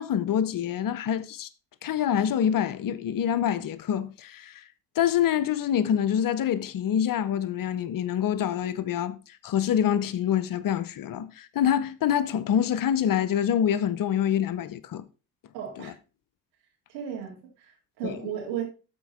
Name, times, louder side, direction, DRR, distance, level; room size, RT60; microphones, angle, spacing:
voice 1, 0.0-1.5 1.8-4.6 5.0-9.2 9.4-15.0 15.8-15.9 18.0-18.2, left 9 dB, 45° left, 0.8 m, -26 dB
voice 2, 15.5-16.0 16.9-18.6, right 9 dB, 75° right, 3.0 m, -35 dB
12.5 x 4.4 x 4.3 m
figure-of-eight pair, 50°, 49 cm